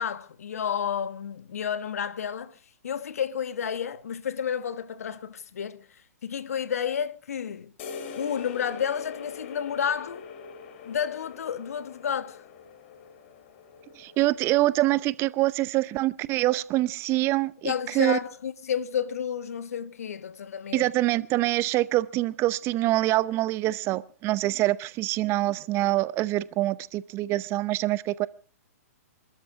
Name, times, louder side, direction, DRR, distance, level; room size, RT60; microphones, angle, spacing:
voice 1, 0.0-2.6 2.8-5.9 6.2-7.7 8.2-10.3 10.8-12.4 17.6-20.9, left 8 dB, 70° left, 1.2 m, -31 dB
sound 1, 7.8-15.3, left 6 dB, 50° left, 2.7 m, -43 dB
voice 2, 14.0-18.2 20.7-28.3, right 17 dB, 30° right, 0.7 m, -25 dB
28.0 x 13.0 x 3.6 m
hypercardioid pair, 120°, 8 cm